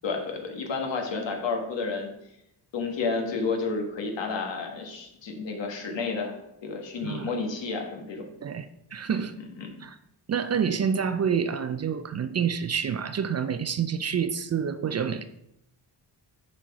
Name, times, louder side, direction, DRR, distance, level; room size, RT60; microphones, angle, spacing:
voice 1, 0.0-2.1 2.7-8.2 9.1-9.2 9.6-9.8, left 4 dB, 75° left, 2 dB, 1.6 m, -31 dB
voice 2, 8.4-9.3 9.8-10.0 10.3-15.3, right 7 dB, 40° right, 11 dB, 0.4 m, -28 dB
6.3 x 4.5 x 4.7 m, 0.83 s
cardioid pair, 90°, 44 cm